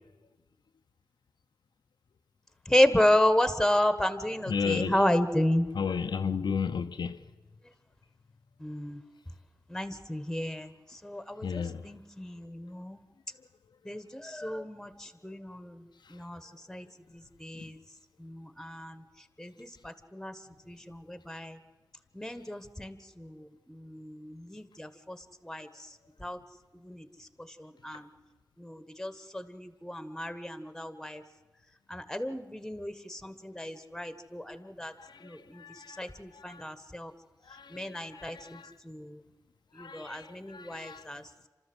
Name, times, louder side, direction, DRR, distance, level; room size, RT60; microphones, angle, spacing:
voice 1, 2.6-5.7 8.6-9.0 9.7-13.0 13.8-16.9 17.1-17.8 18.2-21.6 22.1-26.4 26.7-28.1 28.6-31.2 31.9-34.9 35.2-37.1 37.7-39.2 39.7-41.3, left 1 dB, 5° left, 1.4 m, -32 dB
voice 2, 4.5-4.9 5.8-7.2 11.4-11.8 35.6-36.0 36.5-36.6 37.7-37.8 38.2-38.6 39.8-40.3 40.5-41.0, left 6 dB, 85° left, 0.8 m, -32 dB
29.0 x 13.0 x 7.9 m
wide cardioid pair, 75°, 7 cm